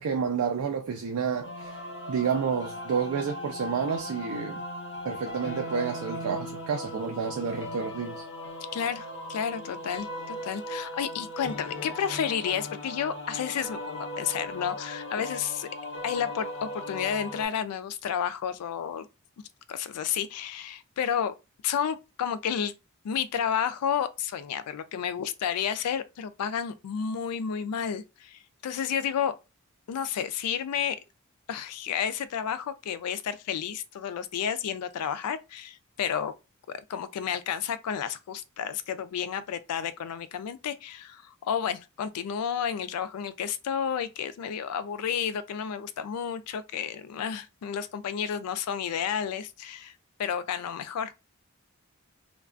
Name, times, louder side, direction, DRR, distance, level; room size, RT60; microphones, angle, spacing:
voice 1, 0.0-1.8 2.1-4.6 5.0-8.2, right 6 dB, 75° right, 0.4 m, -30 dB
sound 1, 1.4-17.5, left 1 dB, 55° left, 0.8 m, -38 dB
voice 2, 8.7-15.7 16.0-19.1 19.7-21.3 21.6-22.7 23.0-29.4 29.9-31.0 31.5-36.3 36.7-49.9 50.2-51.1, left 8 dB, 85° left, 0.3 m, -31 dB
2.3 x 2.2 x 2.4 m
head